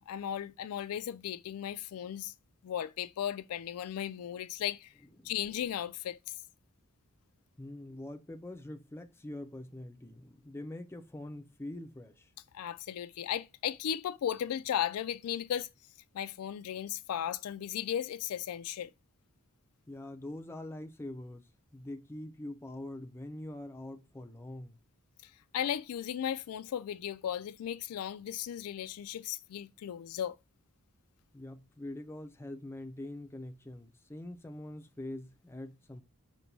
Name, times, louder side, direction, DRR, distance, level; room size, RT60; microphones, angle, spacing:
voice 1, 0.1-2.3 2.6-4.9 5.2-6.2 12.5-15.7 16.1-18.9 25.2-30.3, left 10 dB, 70° left, 0.3 m, -36 dB
voice 2, 7.6-12.3 19.9-24.8 31.3-36.0, left 1 dB, 10° left, 0.5 m, -44 dB
5.3 x 2.2 x 4.5 m
head